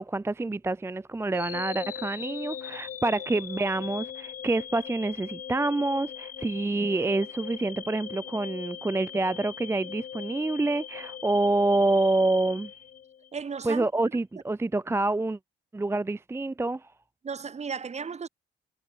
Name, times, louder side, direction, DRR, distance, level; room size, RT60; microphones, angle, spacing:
voice 1, 0.0-12.7 13.6-15.4 15.7-16.9, right 2 dB, 15° right, 0.6 m, -27 dB
sound 1, 1.3-13.5, left 9 dB, 45° left, 0.6 m, -40 dB
voice 2, 13.3-13.9 17.2-18.3, right 5 dB, 35° right, 1.3 m, -34 dB
cardioid pair, 90°, 20 cm